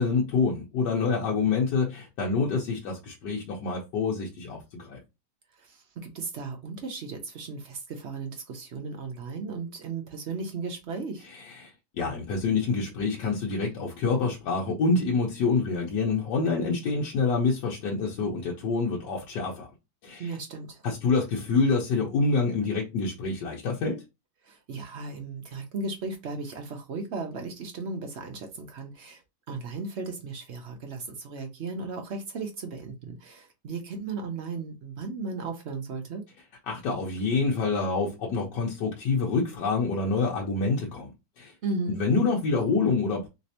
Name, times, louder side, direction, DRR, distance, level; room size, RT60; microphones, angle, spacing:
voice 1, 0.0-5.0 11.3-19.7 20.0-20.3 20.8-24.0 36.7-41.1 41.4-41.5 42.0-43.3, left 4 dB, 90° left, 1.4 m, -27 dB
voice 2, 5.6-11.3 20.2-20.8 24.4-29.2 29.5-36.2 41.6-42.0, right 3 dB, 65° right, 0.7 m, -36 dB
3.3 x 3.1 x 2.8 m
omnidirectional pair, 1.8 m